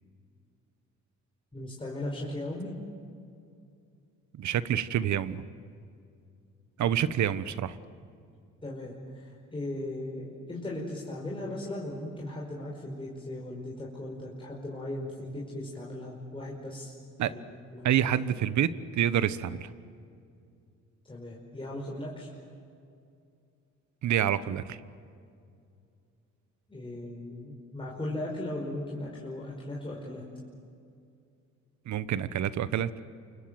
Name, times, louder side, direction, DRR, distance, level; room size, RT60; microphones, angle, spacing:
voice 1, 1.5-2.7 8.6-16.9 17.2-17.4 17.7-18.0 21.0-22.3 26.7-30.2, left 1 dB, 15° left, -3 dB, 5.4 m, -37 dB
voice 2, 4.4-5.4 6.8-7.8 17.2-17.3 17.8-19.7 24.0-24.8 31.9-32.9, right 10 dB, 70° right, 15 dB, 1.2 m, -27 dB
28.5 x 25.0 x 7.8 m, 2.4 s
cardioid pair, 90°, 30 cm